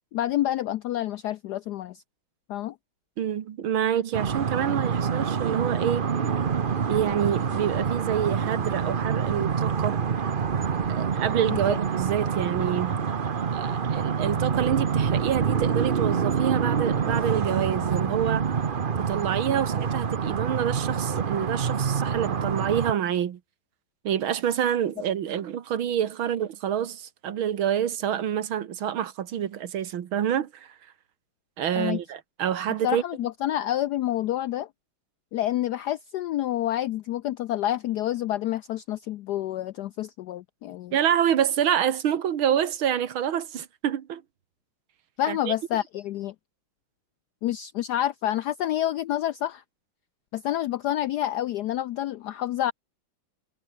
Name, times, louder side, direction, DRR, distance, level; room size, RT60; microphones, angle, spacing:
voice 1, 0.1-2.0 2.5-2.8 11.5-11.8 31.7-32.0 32.8-34.7 35.3-40.9 45.2-46.3 47.4-49.6 50.3-52.7, left 13 dB, 75° left, 0.9 m, -28 dB
voice 2, 3.2-6.1 6.9-10.0 10.9-13.1 13.5-18.4 19.0-23.4 24.0-30.7 31.6-33.0 40.9-44.2 45.3-45.5, right 9 dB, 75° right, 2.1 m, -27 dB
sound 1, 4.1-22.9, right 6 dB, 50° right, 0.6 m, -26 dB
omnidirectional pair, 2.3 m